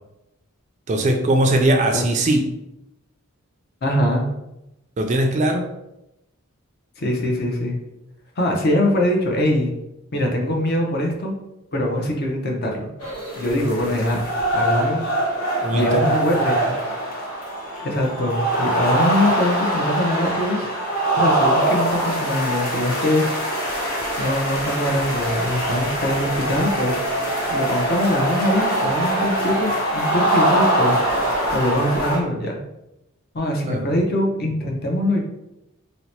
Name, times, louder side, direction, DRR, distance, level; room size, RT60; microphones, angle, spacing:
voice 1, 0.9-2.5 5.0-5.6 15.6-16.0 33.7-33.8, right 1 dB, 30° right, 3 dB, 0.3 m, -19 dB
voice 2, 3.8-4.3 7.0-7.8 8.4-9.7 10.1-11.3 11.7-12.9 13.4-14.2 14.5-15.2 15.7-16.7 17.8-20.7 21.2-23.3 24.2-27.2 27.5-31.0 31.5-32.6 33.3-35.2, left 1 dB, 45° left, 0 dB, 0.6 m, -22 dB
sound 1, 13.0-32.2, right 1 dB, 80° left, 1.0 m, -23 dB
2.8 x 2.1 x 4.0 m, 0.89 s
head